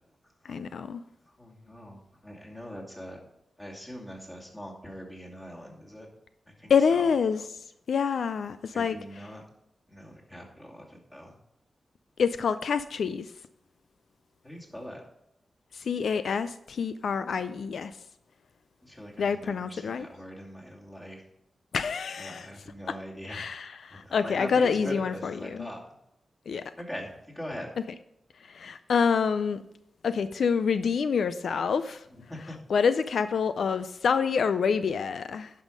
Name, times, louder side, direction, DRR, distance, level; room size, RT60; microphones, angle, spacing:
voice 1, 0.5-1.0 6.7-7.4 7.9-9.2 12.2-13.3 15.7-17.9 19.2-20.1 21.7-22.5 22.9-23.0 23.3-25.7 26.5-26.6 28.5-29.6 30.0-32.0 32.7-35.5, left 6 dB, 80° left, 0.4 m, -27 dB
voice 2, 1.4-3.2 3.6-6.1 6.6-7.0 8.7-9.4 9.9-11.3 14.4-15.0 18.8-21.2 22.2-23.4 23.9-25.8 26.8-27.7 32.1-32.6, equal, 15° left, 2.5 m, -42 dB
11.0 x 5.6 x 5.1 m
wide cardioid pair, 95°, 0 cm